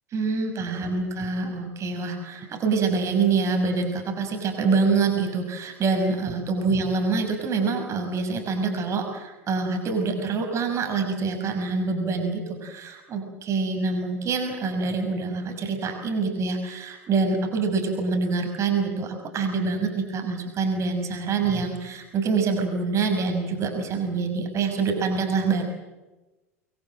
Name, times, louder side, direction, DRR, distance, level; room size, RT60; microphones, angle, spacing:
voice 1, 0.1-25.6, right 4 dB, 40° right, 4 dB, 5.9 m, -26 dB
26.0 x 22.0 x 7.7 m, 1.1 s
figure-of-eight pair, 75°, 8 cm